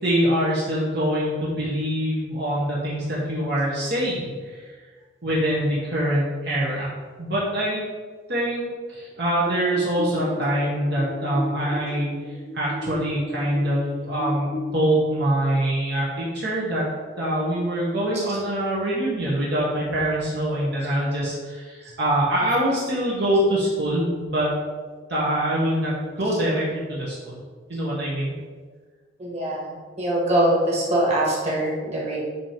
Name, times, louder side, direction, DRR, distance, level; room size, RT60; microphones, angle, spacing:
voice 1, 0.0-4.7 5.2-6.9 7.2-7.8 8.3-12.1 12.5-16.9 17.2-24.5 25.1-27.4 27.7-28.3, right 1 dB, 65° right, -7 dB, 1.5 m, -24 dB
sound 1, 9.7-14.7, left 1 dB, 55° left, 0.9 m, -34 dB
voice 2, 29.2-32.2, right 1 dB, 35° right, -5 dB, 2.2 m, -23 dB
8.6 x 3.1 x 5.1 m, 1.5 s
head